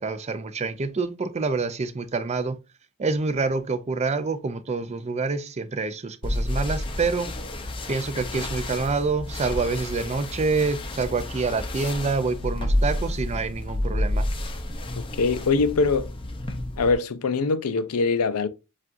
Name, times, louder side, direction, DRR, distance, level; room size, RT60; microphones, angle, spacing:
voice 1, 0.0-2.6 3.0-7.3 7.9-14.3, right 4 dB, 30° right, 0.4 m, -27 dB
sound 1, 6.2-16.9, left 1 dB, 25° left, 0.6 m, -30 dB
voice 2, 15.2-16.1 16.8-18.5, left 4 dB, 85° left, 0.5 m, -23 dB
7.3 x 2.4 x 2.6 m
head